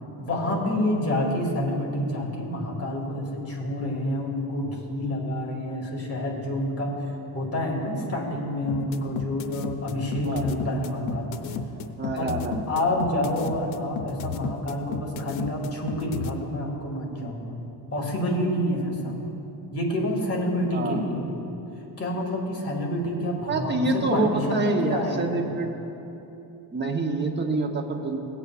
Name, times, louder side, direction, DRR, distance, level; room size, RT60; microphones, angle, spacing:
voice 1, 0.0-11.4 12.1-12.3 12.7-17.6 17.9-21.3 22.0-25.5, left 1 dB, 30° left, -1 dB, 2.1 m, -28 dB
sound 1, 8.7-16.3, left 6 dB, 90° left, 0.7 m, -33 dB
voice 2, 12.0-12.6 20.7-21.0 23.5-25.7 26.7-28.2, right 2 dB, 25° right, 2 dB, 1.0 m, -26 dB
18.0 x 8.2 x 2.5 m, 2.9 s
cardioid pair, 125°, 46 cm